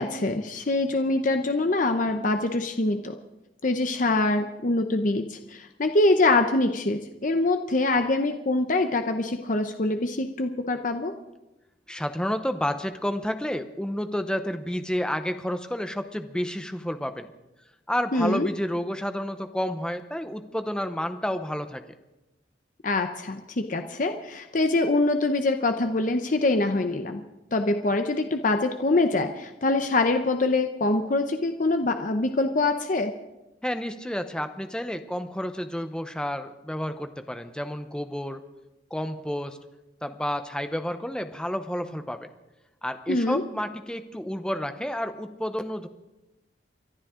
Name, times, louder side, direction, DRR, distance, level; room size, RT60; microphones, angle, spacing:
voice 1, 0.0-3.1 3.6-11.1 18.1-18.5 22.8-27.2 27.5-33.1 43.1-43.4, left 2 dB, 45° left, 7 dB, 0.8 m, -24 dB
voice 2, 11.9-17.3 17.9-21.8 33.6-38.4 38.9-39.6 40.0-42.3 42.8-45.9, equal, 5° left, 8 dB, 0.8 m, -30 dB
29.0 x 12.0 x 3.8 m, 0.99 s
head